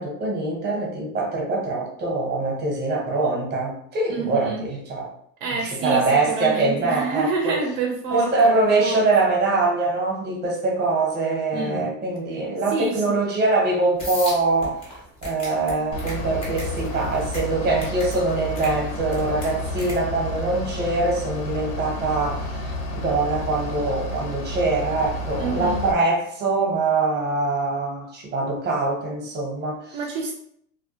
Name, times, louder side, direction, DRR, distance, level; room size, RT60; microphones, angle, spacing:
voice 1, 0.0-5.1 5.6-7.6 8.1-14.9 15.2-30.0, right 3 dB, 20° right, -1 dB, 0.7 m, -23 dB
voice 2, 4.1-4.7 5.4-8.5 8.8-9.1 11.5-11.9 12.7-13.1 22.7-22.8 25.4-25.8 29.9-30.3, right 4 dB, 55° right, 1 dB, 0.5 m, -28 dB
sound 1, 14.0-20.0, left 1 dB, 15° left, 0.3 m, -36 dB
Bus / Idling, 15.9-25.9, left 1 dB, 85° left, 0.7 m, -31 dB
2.3 x 2.1 x 2.7 m, 0.68 s
supercardioid pair, 125°, 48 cm